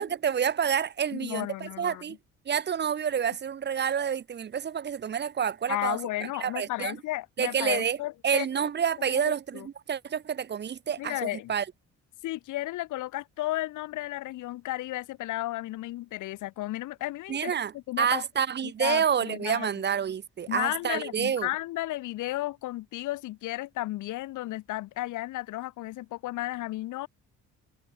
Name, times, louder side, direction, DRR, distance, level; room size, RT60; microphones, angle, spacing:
voice 1, 0.0-2.2 2.5-6.0 6.4-7.0 7.4-8.0 8.2-11.6 17.3-21.5, right 8 dB, 35° right, 0.6 m, -28 dB
voice 2, 1.1-2.0 5.7-8.7 9.0-9.7 11.0-11.5 12.2-18.2 18.6-19.7 20.5-27.1, left 16 dB, 80° left, 0.8 m, -33 dB
cardioid pair, 90°, 30 cm